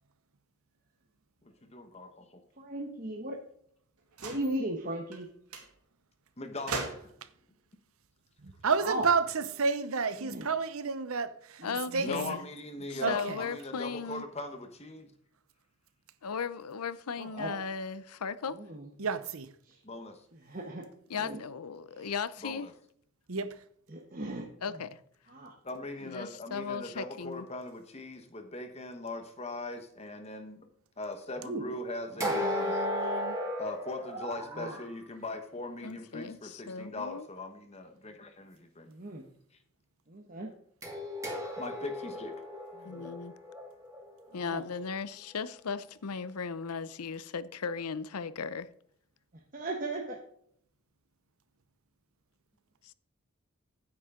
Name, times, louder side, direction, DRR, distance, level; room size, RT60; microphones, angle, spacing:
voice 1, 1.6-2.3 6.4-6.9 12.0-15.1 19.9-20.1 22.4-22.7 25.6-30.6 31.0-32.7 33.6-38.9 41.6-42.3, left 2 dB, 30° left, 1.2 m, -40 dB
voice 2, 2.6-3.4 4.2-5.3 8.8-9.1 10.2-10.5 11.6-12.4 17.2-17.6 18.7-18.8 20.5-20.9 21.2-21.4 22.0-22.1 24.1-24.5 25.3-25.5 31.4-31.6 32.2-32.3 34.5-34.7 38.9-39.2 40.1-40.5 42.9-43.1 44.5-44.6 49.5-50.2, right 1 dB, 40° right, 1.2 m, -36 dB
sound 1, 4.1-4.6 5.1-5.3 5.5-5.7 6.7-7.3 8.5-9.6, right 3 dB, 85° right, 2.2 m, -40 dB
voice 3, 8.4-11.6 11.9-12.1 13.0-13.4 19.0-19.5 23.3-23.5, right 5 dB, 70° right, 0.8 m, -30 dB
voice 4, 11.6-12.5 12.9-14.2 16.2-18.6 21.1-22.7 24.6-25.0 26.0-27.5 32.3-33.4 35.8-37.3 42.8-43.3 44.3-48.7 52.8-52.9, left 5 dB, 90° left, 0.7 m, -37 dB
sound 2, 32.2-34.9 40.8-44.8, equal, 15° right, 2.4 m, -35 dB
9.6 x 9.5 x 3.8 m
head